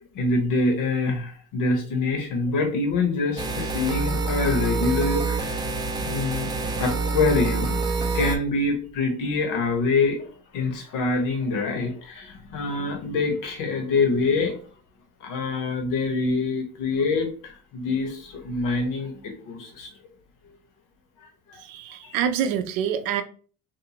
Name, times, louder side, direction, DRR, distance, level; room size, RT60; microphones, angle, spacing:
voice 1, 0.1-5.7 6.0-6.5 6.8-14.5 15.2-19.9 21.5-21.6 22.0-22.1, left 3 dB, 60° left, 1.0 m, -25 dB
sound 1, 3.4-8.4, right 3 dB, 10° right, 0.4 m, -26 dB
voice 2, 21.6-23.2, right 8 dB, 65° right, 0.5 m, -26 dB
2.6 x 2.3 x 2.8 m
supercardioid pair, 100°, 36 cm